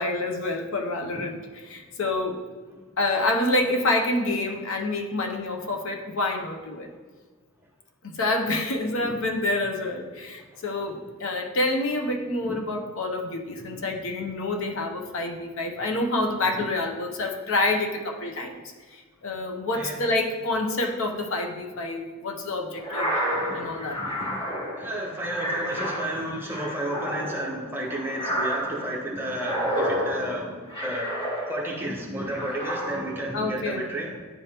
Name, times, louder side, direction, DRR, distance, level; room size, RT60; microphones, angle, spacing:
voice 1, 0.0-1.4 1.7-2.4 3.0-6.9 8.1-18.6 18.9-23.1 23.5-24.0 33.3-33.8, left 2 dB, 60° left, 3 dB, 0.7 m, -27 dB
sound 1, 22.8-31.9 32.3-33.3, equal, 25° left, 1.8 m, -30 dB
voice 2, 23.3-24.4 24.8-30.5 30.8-31.1 31.5-34.2, right 1 dB, 10° right, -3 dB, 0.9 m, -32 dB
9.8 x 3.3 x 2.9 m, 1.4 s
head